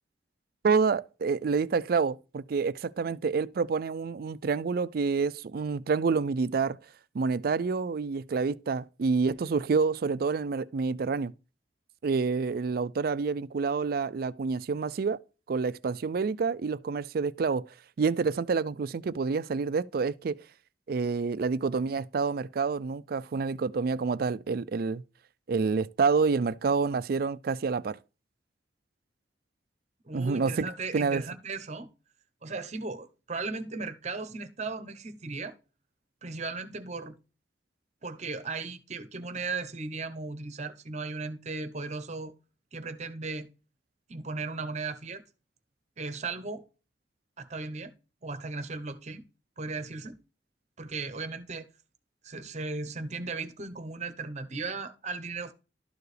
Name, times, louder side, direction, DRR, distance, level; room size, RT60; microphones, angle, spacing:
voice 1, 0.6-6.8 7.1-11.3 12.0-15.2 15.5-17.6 18.0-20.4 20.9-25.0 25.5-28.0 30.1-30.7 30.9-31.2, right 4 dB, 55° right, 0.4 m, -28 dB
voice 2, 30.0-31.9 32.4-35.5 36.2-37.1 38.0-42.3 42.7-43.5 44.1-45.2 46.0-46.6 47.4-47.9 48.2-49.3 49.6-50.2 50.8-51.7 52.2-55.5, right 3 dB, 40° right, 0.8 m, -36 dB
12.5 x 4.6 x 3.3 m
head